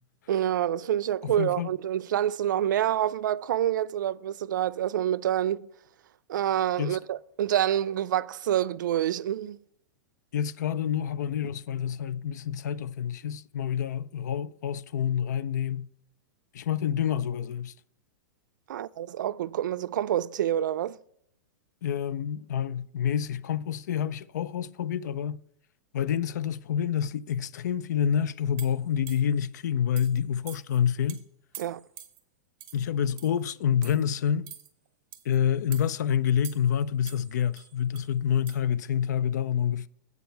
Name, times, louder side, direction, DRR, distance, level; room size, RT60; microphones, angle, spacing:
voice 1, 0.3-5.7 6.3-9.6 18.7-21.0 31.6-31.8, right 11 dB, 80° right, 0.4 m, -27 dB
voice 2, 1.2-1.7 6.8-7.0 10.3-15.9 16.5-17.7 21.8-25.4 25.9-31.2 32.7-34.5 35.3-39.9, left 8 dB, 70° left, 0.4 m, -28 dB
sound 1, 28.6-29.4 30.0-30.2 30.5-30.8 31.1-31.2 31.5-32.2 32.6-32.8 33.2-33.4 33.8-34.0 34.5-34.7 35.1-35.4 35.7-35.9 36.4-36.8 37.1-38.1 38.5-38.6, right 10 dB, 35° right, 1.0 m, -46 dB
8.1 x 7.1 x 4.5 m
supercardioid pair, 180°, 10 cm